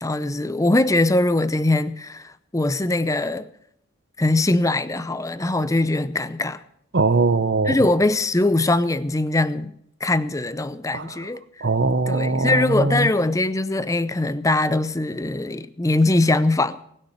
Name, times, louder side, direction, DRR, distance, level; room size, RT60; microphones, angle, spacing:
voice 1, 0.0-3.5 4.2-6.6 7.7-9.7 10.0-11.4 12.1-16.8, left 2 dB, 15° left, 0.6 m, -21 dB
voice 2, 6.9-7.8 10.9-11.2 11.6-13.1, right 3 dB, 50° right, 0.8 m, -21 dB
19.5 x 6.6 x 9.6 m
head